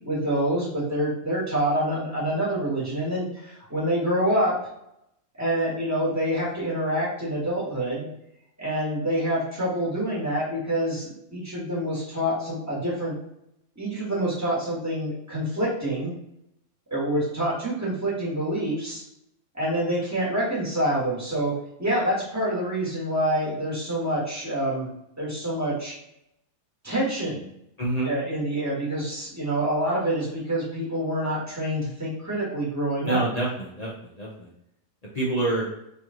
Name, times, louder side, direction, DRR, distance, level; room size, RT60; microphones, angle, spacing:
voice 1, 0.0-4.6 5.4-8.1 8.6-13.1 13.7-16.1 16.9-19.0 19.5-21.5 21.8-24.9 25.2-25.9 26.8-27.4 28.0-33.2, right 1 dB, 10° right, -6 dB, 1.3 m, -26 dB
voice 2, 27.8-28.1 33.0-34.5 35.1-35.7, right 2 dB, 60° left, -5 dB, 0.4 m, -27 dB
3.1 x 3.1 x 3.7 m, 0.80 s
omnidirectional pair, 1.7 m